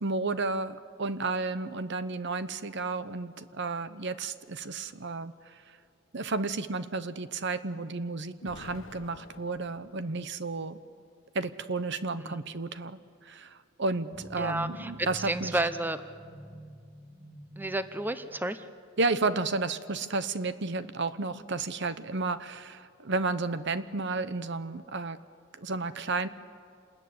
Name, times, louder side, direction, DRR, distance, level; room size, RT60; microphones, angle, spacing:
voice 1, 0.0-5.3 6.1-10.8 11.3-15.6 19.0-25.2 25.6-26.3, right 3 dB, 65° right, 13 dB, 1.0 m, -32 dB
Explosion, 8.4-10.6, left 2 dB, 85° left, 1.3 m, -50 dB
sound 1, 14.1-18.7, equal, 5° left, 3.0 m, -48 dB
voice 2, 14.4-16.0 17.6-18.6, right 2 dB, 10° right, 11 dB, 0.7 m, -31 dB
27.5 x 20.5 x 9.5 m, 2.2 s
head